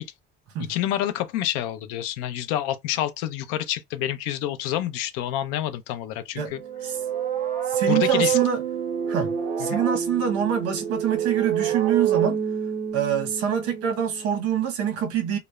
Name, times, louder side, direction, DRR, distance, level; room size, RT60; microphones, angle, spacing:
voice 1, 0.7-6.6 7.9-8.4 9.7-9.8, left 12 dB, 90° left, 0.5 m, -28 dB
sound 1, 6.5-14.3, right 9 dB, 30° right, 0.6 m, -27 dB
voice 2, 7.7-8.6 9.1-12.4 12.9-15.4, right 8 dB, 55° right, 0.9 m, -25 dB
3.0 x 2.0 x 2.2 m
cardioid pair, 170°, 29 cm